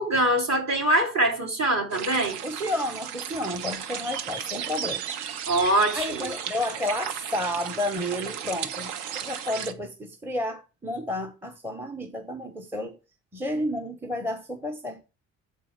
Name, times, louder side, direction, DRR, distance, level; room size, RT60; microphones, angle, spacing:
voice 1, 0.0-2.4 5.5-6.2, right 1 dB, 35° right, 3.0 m, -23 dB
sound 1, 1.9-9.7, right 8 dB, 65° right, 0.8 m, -34 dB
voice 2, 2.4-5.1 5.9-8.9 9.2-13.0 13.3-15.1, left 1 dB, 5° right, 0.9 m, -31 dB
7.3 x 4.5 x 4.3 m
hypercardioid pair, 50°, 43 cm